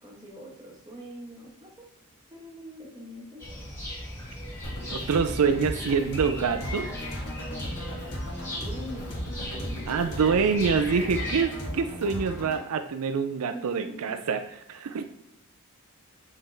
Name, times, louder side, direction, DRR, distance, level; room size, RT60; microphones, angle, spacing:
voice 1, 0.0-1.9 2.3-3.5 8.6-9.2 9.5-9.9 13.5-14.2, equal, 15° right, -2 dB, 1.3 m, -43 dB
sound 1, 3.4-11.4, left 1 dB, 10° left, 1.6 m, -37 dB
sound 2, 4.6-12.6, equal, 80° left, 2.5 m, -37 dB
voice 2, 4.9-6.9 9.9-14.4 14.7-15.0, right 5 dB, 80° right, 8 dB, 0.4 m, -26 dB
7.5 x 4.5 x 3.4 m, 0.84 s
head